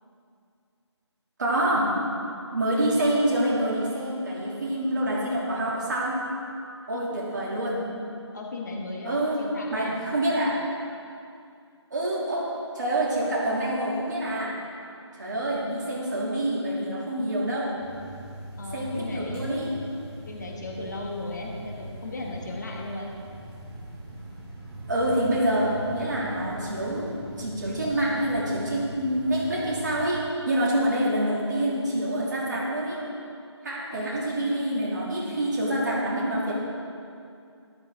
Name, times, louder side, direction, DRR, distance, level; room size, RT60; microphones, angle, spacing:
voice 1, 1.4-1.9 2.5-6.2 6.9-7.8 9.0-9.4 9.7-10.6 11.9-12.5 12.7-14.5 15.2-17.7 18.7-19.7 24.9-27.1 27.4-33.0 33.6-36.6, right 1 dB, 40° right, -5 dB, 2.7 m, -26 dB
voice 2, 8.3-10.1 18.6-19.6 20.3-23.1 27.6-27.8 33.9-34.1, left 2 dB, 40° left, -1 dB, 1.4 m, -36 dB
sound 1, 17.8-30.0, right 1 dB, 10° right, 1.2 m, -41 dB
13.5 x 12.0 x 3.6 m, 2.5 s
figure-of-eight pair, 160°, 15 cm